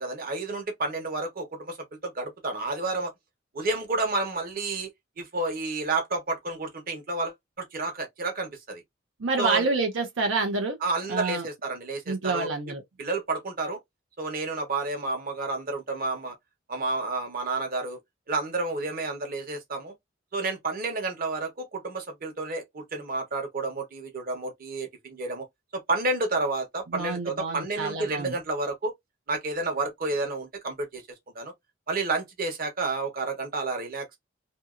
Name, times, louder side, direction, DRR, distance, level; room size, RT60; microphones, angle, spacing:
voice 1, 0.0-1.8 2.0-3.1 3.5-4.9 5.2-8.8 9.4-9.7 10.8-12.5 13.0-13.8 14.2-16.3 16.7-18.0 18.3-19.9 20.3-25.4 25.7-28.9 29.3-31.0 31.3-31.5 31.9-34.2, right 3 dB, 50° right, 1.0 m, -30 dB
voice 2, 9.2-10.8 11.1-11.5 12.1-12.8 26.9-28.4, right 3 dB, 85° right, 0.7 m, -28 dB
2.8 x 2.7 x 2.4 m
head